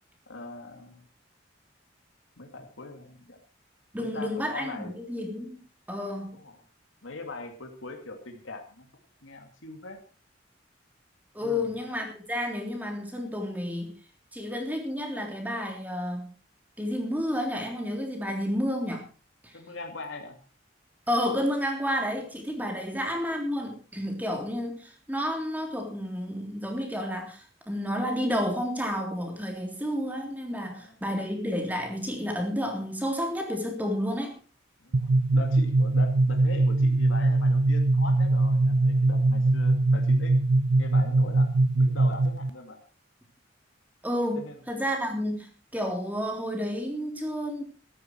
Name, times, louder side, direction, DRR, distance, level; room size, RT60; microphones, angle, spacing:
voice 1, 0.3-1.0 2.4-3.4 4.0-5.0 6.3-6.6 7.0-8.9 9.2-10.0 11.4-11.8 19.5-20.4 30.6-30.9 34.8-40.3 40.8-42.8 44.3-44.6, left 2 dB, 90° left, 3 dB, 2.4 m, -41 dB
voice 2, 3.9-5.6 5.9-6.4 11.3-13.9 14.3-16.3 16.8-19.1 19.4-19.5 21.1-34.4 44.0-47.6, equal, 10° right, 3 dB, 3.4 m, -31 dB
sound 1, 34.9-42.5, right 2 dB, 60° right, 0.6 m, -22 dB
13.5 x 13.5 x 4.6 m, 0.36 s
head